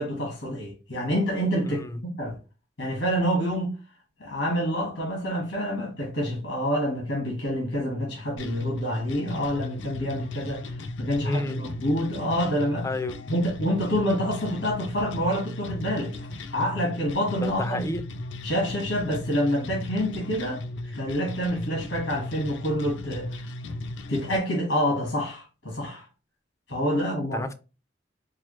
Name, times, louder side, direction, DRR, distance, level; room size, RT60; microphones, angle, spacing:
voice 1, 0.0-2.4 2.8-3.8 4.2-10.6 11.0-12.9 13.3-16.1 16.5-17.8 18.4-23.5 24.1-26.1 26.7-27.4, equal, 90° left, 1.5 m, -27 dB
voice 2, 1.7-2.0 11.2-11.6 12.8-13.2 17.4-18.1 27.3-27.5, left 2 dB, 15° left, 0.4 m, -30 dB
sound 1, 8.4-24.4, left 2 dB, 75° left, 0.5 m, -36 dB
4.6 x 2.0 x 3.1 m
head